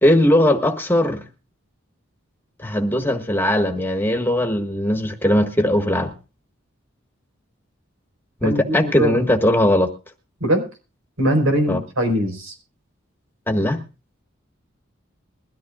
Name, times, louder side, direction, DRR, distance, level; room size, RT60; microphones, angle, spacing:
voice 1, 0.0-1.2 2.6-6.1 8.4-9.9 11.7-11.8 13.5-13.8, left 1 dB, 10° left, 5 dB, 1.4 m, -19 dB
voice 2, 8.4-9.2 10.4-10.7 11.2-12.5, equal, 85° right, 5 dB, 4.6 m, -21 dB
21.5 x 13.5 x 2.4 m, 0.32 s
head